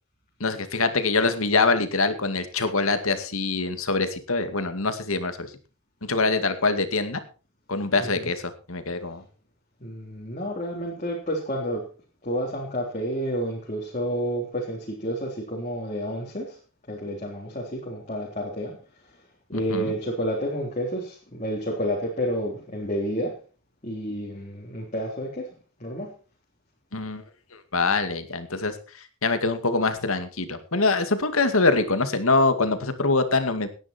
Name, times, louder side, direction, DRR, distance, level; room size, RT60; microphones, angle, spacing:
voice 1, 0.4-5.5 6.0-7.2 7.7-9.2 19.5-19.9 26.9-27.2 27.5-33.7, left 3 dB, 75° left, 9 dB, 2.2 m, -24 dB
voice 2, 8.0-8.3 9.8-11.9 12.2-16.6 16.9-18.8 19.5-23.4 23.8-25.5 25.8-26.1, equal, 35° left, -2 dB, 3.6 m, -30 dB
18.0 x 10.5 x 4.5 m, 0.36 s
head